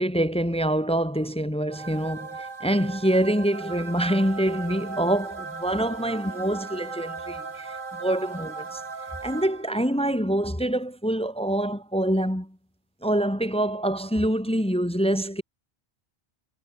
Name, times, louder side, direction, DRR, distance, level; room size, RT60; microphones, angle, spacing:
voice 1, 0.0-8.8 9.2-12.6 13.0-15.4, right 1 dB, 5° left, 1.2 m, -25 dB
sound 1, 1.7-10.0, right 4 dB, 50° right, 1.8 m, -37 dB
omnidirectional pair, 1.2 m